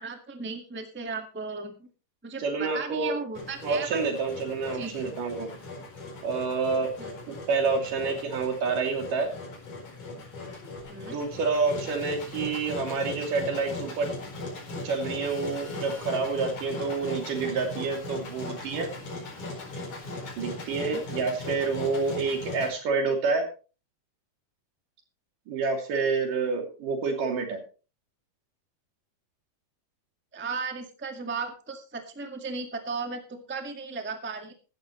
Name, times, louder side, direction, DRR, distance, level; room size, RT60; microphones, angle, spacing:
voice 1, 0.0-1.9 2.2-4.0 4.7-5.1 7.0-7.3 10.9-11.1 20.8-21.0 30.3-34.5, right 4 dB, 5° right, 5 dB, 0.8 m, -36 dB
voice 2, 2.4-3.1 3.6-5.5 6.2-6.9 7.3-9.3 11.1-14.1 14.8-18.9 20.4-23.5 25.5-27.6, right 4 dB, 75° right, 3 dB, 4.4 m, -28 dB
Engine, 3.4-22.7, left 2 dB, 65° left, 6.1 m, -38 dB
15.5 x 13.5 x 3.2 m, 0.35 s
omnidirectional pair, 3.8 m